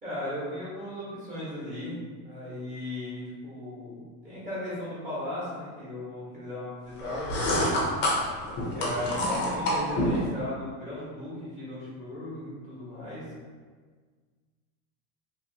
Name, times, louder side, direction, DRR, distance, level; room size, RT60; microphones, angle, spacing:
voice 1, 0.0-7.7 8.7-13.2, left 1 dB, 15° right, -10 dB, 1.4 m, -37 dB
sound 1, 7.0-10.3, left 1 dB, 25° left, 0.7 m, -27 dB
3.0 x 3.0 x 2.8 m, 1.5 s
supercardioid pair, 155°, 45 cm